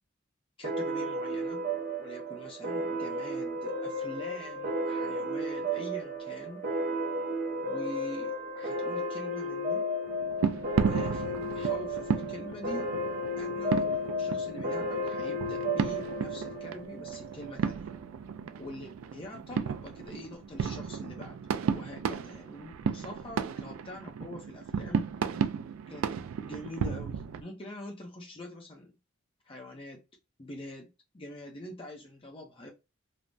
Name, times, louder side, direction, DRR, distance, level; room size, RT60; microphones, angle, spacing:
voice 1, 0.6-1.7 2.0-6.7 7.6-9.9 10.7-12.9 13.4-17.9 18.6-21.4 21.7-25.1 25.9-26.1 26.4-29.0 29.5-30.0 30.4-30.9 31.1-32.7, left 1 dB, 25° left, 0.5 m, -44 dB
sound 1, 0.6-17.7, equal, 40° right, 0.6 m, -33 dB
Fireworks Distant, 10.1-27.4, right 6 dB, 75° right, 0.3 m, -34 dB
3.2 x 2.0 x 2.5 m
head